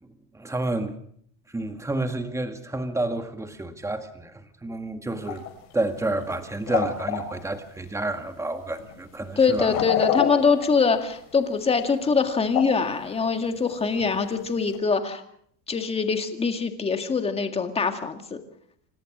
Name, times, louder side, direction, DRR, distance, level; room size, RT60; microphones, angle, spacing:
voice 1, 0.3-1.0 1.5-5.5 5.7-9.8, right 2 dB, 5° right, 7 dB, 1.9 m, -30 dB
sound 1, 5.2-5.5 5.8-6.4 6.7-7.3 8.3-8.4 8.8-9.0 9.5-11.1 12.0-12.3 12.5-12.9 13.6-13.7 14.0-14.1 14.7-14.8, left 9 dB, 80° left, 7.2 m, -27 dB
voice 2, 9.4-15.2 15.7-18.4, left 5 dB, 15° left, 6 dB, 2.0 m, -23 dB
27.0 x 18.5 x 6.2 m, 0.66 s
cardioid pair, 160°, 41 cm